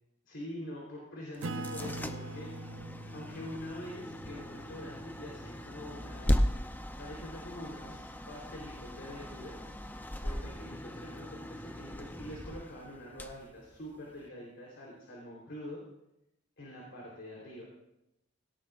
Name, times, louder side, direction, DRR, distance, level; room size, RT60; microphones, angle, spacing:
voice 1, 0.3-2.5 3.1-6.4 7.0-9.7 10.2-15.8 16.6-17.6, left 1 dB, 65° left, -4 dB, 3.8 m, -45 dB
sound 1, 1.3-14.3, equal, 10° left, 0.6 m, -37 dB
Acoustic guitar / Strum, 1.4-6.4, right 2 dB, 80° right, 0.8 m, -44 dB
17.5 x 17.0 x 2.5 m, 0.86 s
head